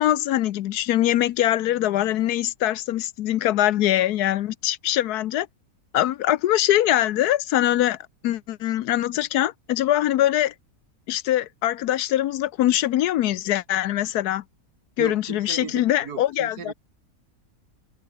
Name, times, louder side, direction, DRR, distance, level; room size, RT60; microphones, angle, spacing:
voice 1, 0.0-5.5 5.9-8.0 8.2-10.5 11.1-14.4 15.0-16.7, left 13 dB, 80° left, 1.2 m, -23 dB
voice 2, 15.0-16.7, right 6 dB, 75° right, 2.3 m, -36 dB
omnidirectional pair, 1.7 m